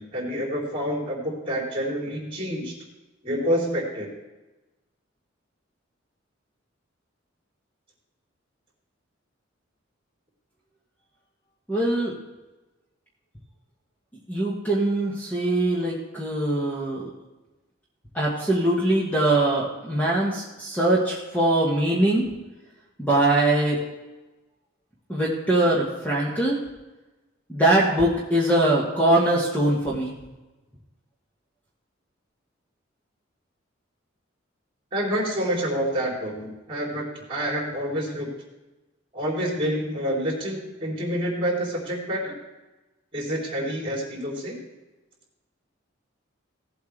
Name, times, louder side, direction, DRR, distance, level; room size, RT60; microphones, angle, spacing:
voice 1, 0.0-2.7 3.2-4.1 34.9-38.3 39.1-42.3 43.1-44.6, equal, 30° right, -3 dB, 3.8 m, -28 dB
voice 2, 11.7-12.1 14.3-17.1 18.1-22.3 23.0-23.8 25.1-26.6 27.5-30.1, right 1 dB, 10° left, -5 dB, 1.8 m, -22 dB
17.5 x 8.0 x 3.4 m, 1.1 s
head